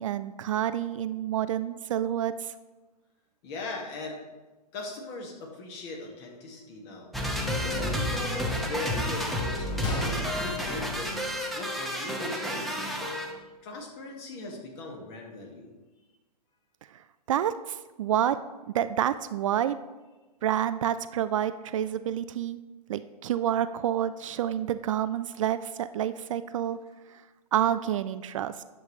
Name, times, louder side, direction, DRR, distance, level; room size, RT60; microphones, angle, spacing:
voice 1, 0.0-2.5 17.3-18.4 18.7-19.8 20.4-22.6 22.9-26.8 27.5-28.6, right 10 dB, 50° right, 12 dB, 0.4 m, -28 dB
voice 2, 3.4-4.2 4.7-11.2 11.5-13.0 13.6-15.7, left 2 dB, 40° left, 0 dB, 1.9 m, -39 dB
sound 1, 7.1-13.3, equal, ahead, 0.9 m, -31 dB
Gunshot gunfire, 9.8-11.8 12.1-12.2 12.9-13.1, left 2 dB, 20° left, 1.4 m, -36 dB
10.5 x 6.7 x 3.2 m, 1.2 s
figure-of-eight pair, 115°, 21 cm